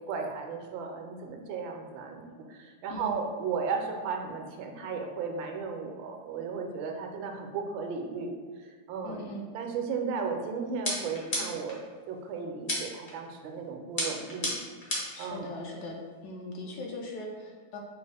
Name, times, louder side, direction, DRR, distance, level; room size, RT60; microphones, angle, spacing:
voice 1, 0.1-8.3 8.9-9.3 9.5-14.5 15.2-15.5, right 5 dB, 80° right, 3 dB, 1.3 m, -35 dB
voice 2, 9.0-9.4 15.1-16.0 16.2-17.8, left 1 dB, 70° left, 0 dB, 1.1 m, -40 dB
sound 1, 10.8-11.8 12.7-13.1 14.0-15.2, left 1 dB, 40° left, 0.7 m, -32 dB
5.1 x 2.4 x 3.3 m, 1.5 s
omnidirectional pair, 2.1 m